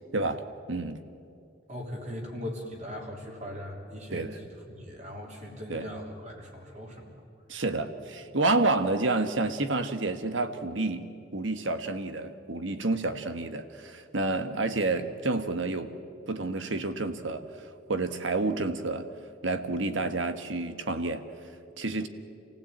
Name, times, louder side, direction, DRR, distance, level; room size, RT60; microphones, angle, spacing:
voice 1, 0.7-1.0 4.1-4.3 5.7-5.9 7.5-15.9 16.3-19.1 19.4-21.2 21.8-22.1, right 2 dB, 75° right, 9 dB, 1.4 m, -29 dB
voice 2, 1.7-7.2, equal, 35° right, 0 dB, 3.3 m, -39 dB
27.0 x 16.0 x 8.8 m, 2.5 s
head